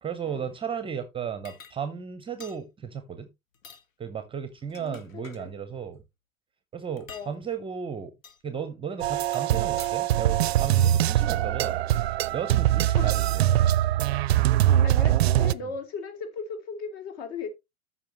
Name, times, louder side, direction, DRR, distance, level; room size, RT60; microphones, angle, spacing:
voice 1, 0.0-3.3 4.0-6.0 6.7-8.1 8.4-11.8 12.3-13.4, right 7 dB, 15° right, 0.8 m, -34 dB
sound 1, 1.4-1.8 2.4-2.6 3.5-3.8 4.5-5.4 7.0-7.3 8.2-8.4 9.1-9.9, left 6 dB, 70° left, 1.3 m, -48 dB
voice 2, 4.8-5.5 7.1-7.3 12.9-13.5 14.8-17.5, left 5 dB, 45° left, 3.0 m, -37 dB
sound 2, 9.0-15.5, right 12 dB, 50° right, 0.5 m, -22 dB
13.5 x 5.6 x 3.1 m
figure-of-eight pair, 100°, 42 cm